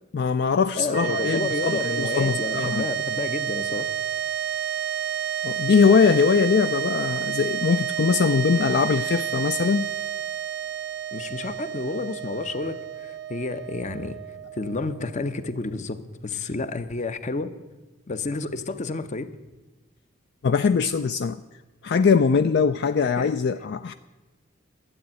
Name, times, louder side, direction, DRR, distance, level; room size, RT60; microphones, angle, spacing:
voice 1, 0.1-2.8 5.4-9.9 20.4-21.4 21.8-23.9, left 5 dB, 60° left, 11 dB, 0.4 m, -21 dB
voice 2, 0.7-3.9 11.1-14.2 14.5-17.5 18.1-19.3 23.0-23.3, left 3 dB, 40° left, 12 dB, 0.7 m, -30 dB
sound 1, 0.9-15.3, right 10 dB, 60° right, 0.6 m, -30 dB
12.5 x 8.6 x 8.8 m, 1.1 s
head